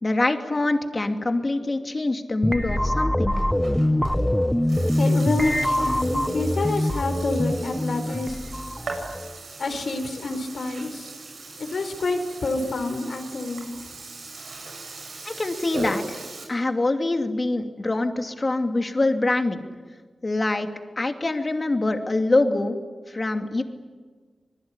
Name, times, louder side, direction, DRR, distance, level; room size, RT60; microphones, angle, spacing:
voice 1, 0.0-3.3 15.2-16.2 16.5-19.6 20.2-20.7 21.0-22.8 23.1-23.6, left 2 dB, 35° left, 5 dB, 2.6 m, -24 dB
sound 1, 2.4-9.3, left 1 dB, 5° left, 0.9 m, -24 dB
Burping eructation, 3.3-16.4, right 3 dB, 80° right, 7.6 m, -39 dB
voice 2, 5.0-8.4 9.6-11.1 11.6-13.7, left 2 dB, 75° left, 7 dB, 4.3 m, -27 dB
25.5 x 21.5 x 9.9 m, 1.5 s
wide cardioid pair, 75°, 0 cm